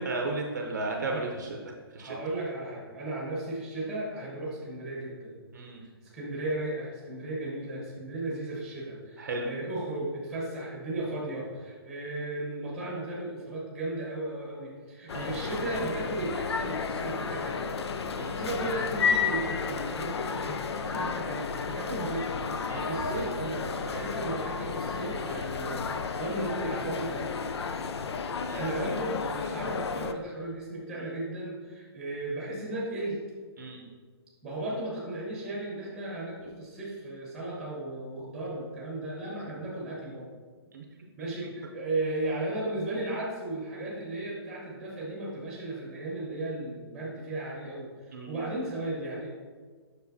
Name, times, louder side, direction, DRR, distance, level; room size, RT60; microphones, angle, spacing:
voice 1, 0.0-1.6 1.9-2.2 5.5-5.8 9.2-9.5 15.1-15.3 18.2-18.4 20.8-21.1 22.7-22.9 28.5-28.6 33.6-33.8 40.7-40.8 41.4-41.5 48.1-48.3, right 3 dB, 45° right, 2 dB, 0.7 m, -34 dB
voice 2, 2.0-5.4 6.1-17.6 18.3-27.4 28.2-33.2 34.4-40.3 41.2-49.3, right 2 dB, 5° right, -4 dB, 1.1 m, -35 dB
sound 1, 15.1-30.1, left 5 dB, 80° left, 0.5 m, -32 dB
7.2 x 6.1 x 2.7 m, 1.5 s
hypercardioid pair, 175°, 14 cm